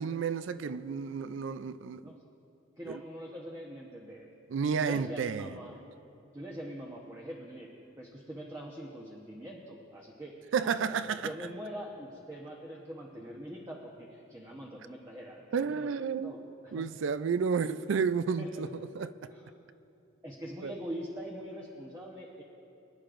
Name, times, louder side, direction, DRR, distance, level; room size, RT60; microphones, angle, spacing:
voice 1, 0.0-2.0 2.9-3.0 4.5-5.6 10.5-11.3 15.5-18.7 19.0-19.1 20.6-20.8, right 6 dB, 60° right, 0.4 m, -31 dB
voice 2, 2.8-4.3 4.8-5.7 6.3-7.7 8.0-15.9 16.2-16.9 18.4-18.7 19.3-19.5 20.2-22.4, equal, 15° right, 0.9 m, -43 dB
24.5 x 10.5 x 2.5 m
head